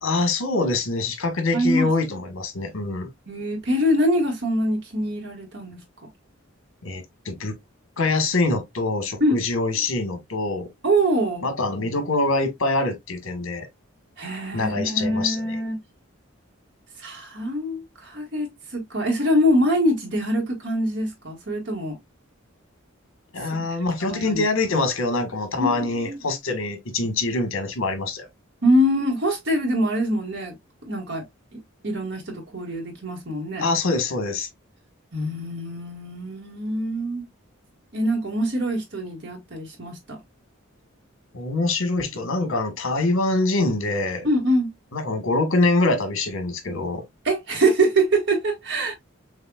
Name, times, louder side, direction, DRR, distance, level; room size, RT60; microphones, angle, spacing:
voice 1, 0.0-3.1 6.8-7.5 8.0-10.7 11.4-13.7 14.5-15.6 23.3-28.3 33.6-34.5 41.3-44.3 44.9-47.0, left 2 dB, 80° left, 1.5 m, -24 dB
voice 2, 1.5-1.9 3.3-5.8 9.2-9.4 10.8-11.4 14.2-15.8 17.0-22.0 23.5-23.6 24.0-24.4 25.6-26.3 28.6-30.5 30.9-31.2 31.8-33.6 35.1-37.2 37.9-40.2 44.2-44.7 47.2-48.9, equal, 55° right, 1.7 m, -24 dB
6.5 x 2.7 x 2.3 m
head